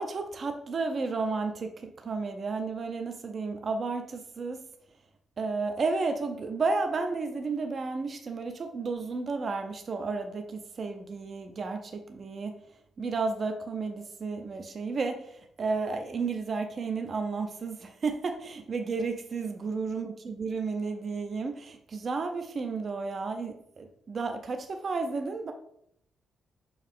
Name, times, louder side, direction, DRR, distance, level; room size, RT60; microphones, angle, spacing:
voice 1, 0.0-4.6 5.4-12.5 13.0-25.5, right 4 dB, 35° right, 6 dB, 0.5 m, -32 dB
5.8 x 4.6 x 3.6 m, 0.73 s
wide cardioid pair, 170°, 0 cm